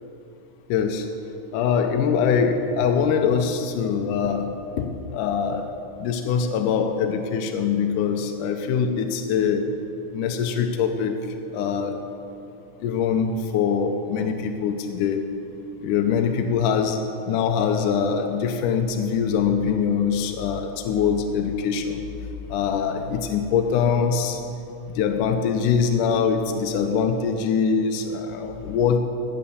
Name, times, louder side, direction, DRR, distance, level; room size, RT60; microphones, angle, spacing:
voice 1, 0.7-1.1 1.5-9.8 10.1-12.1 12.8-15.3 15.8-22.0 22.5-24.4 25.0-29.0, left 6 dB, 80° left, 5 dB, 1.9 m, -23 dB
16.0 x 8.6 x 7.0 m, 2.9 s
omnidirectional pair, 4.5 m